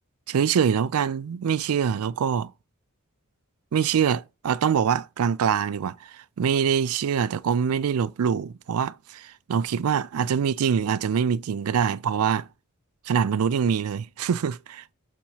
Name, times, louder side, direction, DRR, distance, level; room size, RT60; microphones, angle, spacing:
voice 1, 0.3-2.5 3.7-12.5 13.1-14.9, right 7 dB, 85° right, 0.4 m, -24 dB
7.3 x 2.9 x 5.5 m
head